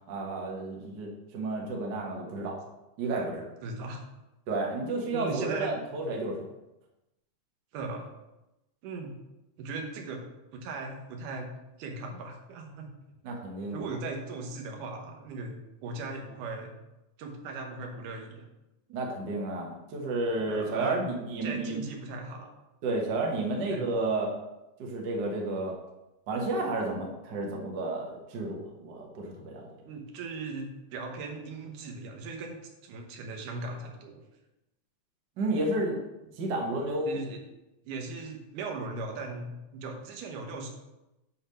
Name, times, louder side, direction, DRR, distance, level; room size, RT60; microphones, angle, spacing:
voice 1, 0.1-2.6 3.0-3.5 4.5-6.5 13.2-13.9 18.9-21.8 22.8-24.3 24.8-25.7 26.3-29.7 35.4-36.0 36.4-37.2, right 2 dB, 60° right, 0 dB, 1.2 m, -31 dB
voice 2, 3.6-4.0 5.1-5.7 7.7-8.1 8.8-9.1 9.6-10.2 10.5-11.5 11.8-12.9 13.7-16.7 17.2-18.5 20.5-21.1 21.4-22.5 23.7-23.8 29.8-34.2 37.0-37.4 37.9-40.7, right 3 dB, 80° right, 2 dB, 2.5 m, -38 dB
7.9 x 3.4 x 5.5 m, 0.95 s
omnidirectional pair, 3.6 m